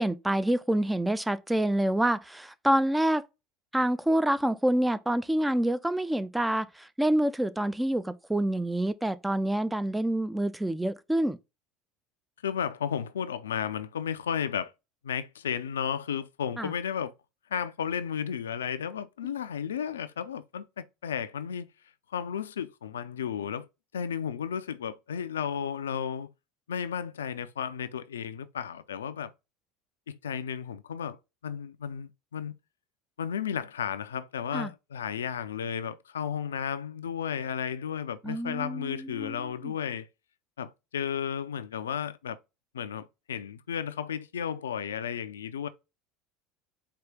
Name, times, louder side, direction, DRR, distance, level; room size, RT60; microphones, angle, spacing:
voice 1, 0.0-3.3 3.7-11.4 16.6-16.7 34.5-34.7 38.2-39.7, right 1 dB, 5° right, 0.3 m, -27 dB
voice 2, 12.4-14.7 15.0-17.1 17.5-21.7 22.1-23.7 23.9-26.3 26.7-29.3 30.1-31.2 31.4-32.6 33.2-40.1 40.6-42.4 42.7-45.7, left 8 dB, 80° left, 0.3 m, -33 dB
4.6 x 2.4 x 3.5 m
figure-of-eight pair, 70°, 0 cm